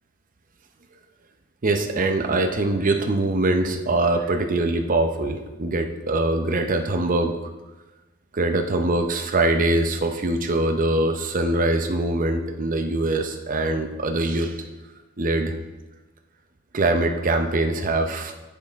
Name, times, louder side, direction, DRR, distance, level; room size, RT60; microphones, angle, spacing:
voice 1, 1.6-7.4 8.3-14.6 15.2-15.5 16.7-18.3, right 2 dB, 40° right, 6 dB, 0.6 m, -23 dB
7.6 x 6.7 x 3.5 m, 1.1 s
head